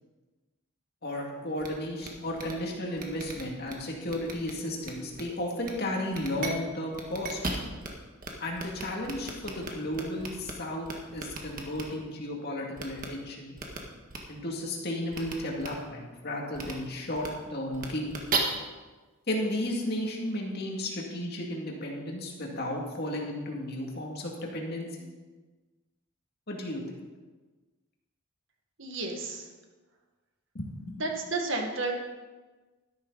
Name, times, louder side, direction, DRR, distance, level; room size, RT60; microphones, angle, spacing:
voice 1, 1.0-7.4 8.4-13.6 14.3-18.1 19.3-24.9 26.5-26.8 30.5-30.9, left 1 dB, 45° left, -1 dB, 2.3 m, -34 dB
sound 1, 1.6-1.7 2.0-2.1 2.4-2.5 3.0-3.7 4.1-4.5 4.8-5.2 5.6-5.7 6.1-6.5 6.9-7.9 8.2-8.3 8.6-10.5 10.8-11.8 12.8-13.1 13.6-13.8 14.1-14.2 15.1-15.3 15.6-15.7 16.5-16.7 17.1-17.3 17.7-18.4, right 4 dB, 40° right, 1.5 m, -35 dB
voice 2, 28.8-29.5 31.0-31.9, right 3 dB, 60° right, 2 dB, 1.8 m, -32 dB
13.0 x 11.5 x 4.1 m, 1.3 s
head